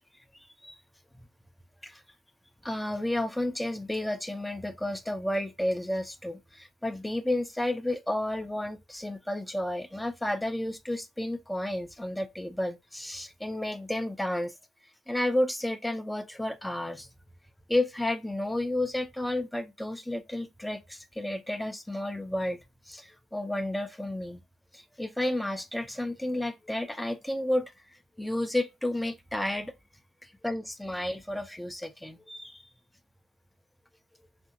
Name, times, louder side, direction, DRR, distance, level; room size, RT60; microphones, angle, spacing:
voice 1, 2.6-14.5 15.1-17.1 17.7-22.6 22.9-24.4 24.7-27.7 28.2-29.7 30.2-32.7, left 1 dB, 5° left, 0.4 m, -31 dB
2.7 x 2.6 x 2.4 m
figure-of-eight pair, 60°, 0 cm